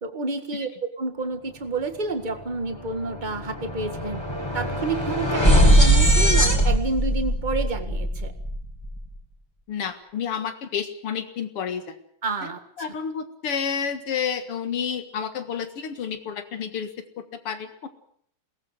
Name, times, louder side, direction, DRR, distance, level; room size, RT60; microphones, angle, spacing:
voice 1, 0.0-4.2 4.5-8.3 12.2-12.6 12.9-13.0, right 3 dB, 20° right, 8 dB, 1.8 m, -29 dB
sound 1, 2.3-2.4 2.7-9.0, equal, 10° left, 2.9 m, -21 dB
voice 2, 9.7-12.0 12.4-12.5 12.8-16.9 17.2-17.9, left 7 dB, 90° left, 9 dB, 2.7 m, -30 dB
22.0 x 18.5 x 7.7 m, 0.64 s
omnidirectional pair, 2.4 m